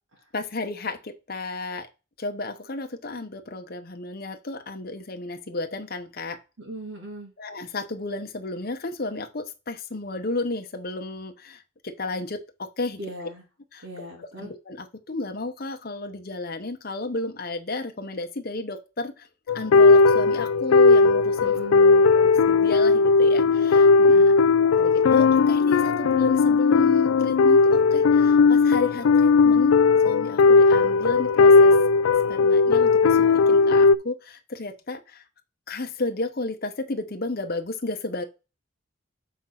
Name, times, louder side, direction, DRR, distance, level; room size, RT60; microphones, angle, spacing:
voice 1, 0.3-1.9 2.2-6.4 7.4-13.0 13.7-13.9 14.2-19.3 19.5-21.6 22.1-24.3 24.8-29.7 30.0-31.8 32.3-35.2 35.7-38.2, left 2 dB, 45° left, 6 dB, 0.9 m, -32 dB
voice 2, 6.6-7.3 13.0-13.4 13.8-14.5 21.4-22.1 24.0-24.4, right 1 dB, 85° right, -2 dB, 2.1 m, -39 dB
sound 1, 19.5-34.0, left 4 dB, 75° left, 0.3 m, -17 dB
7.3 x 3.9 x 5.7 m, 0.29 s
head